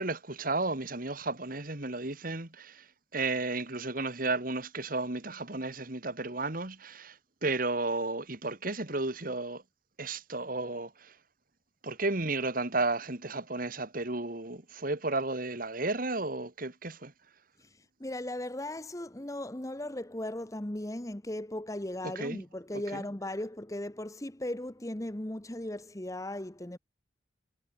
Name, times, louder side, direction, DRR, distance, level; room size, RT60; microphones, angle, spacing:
voice 1, 0.0-2.8 3.1-7.1 7.4-9.6 10.0-11.1 11.8-17.1 22.2-22.4 22.9-23.0, right 2 dB, 45° right, 2.4 m, -33 dB
voice 2, 18.0-26.8, left 1 dB, 15° left, 1.1 m, -37 dB
head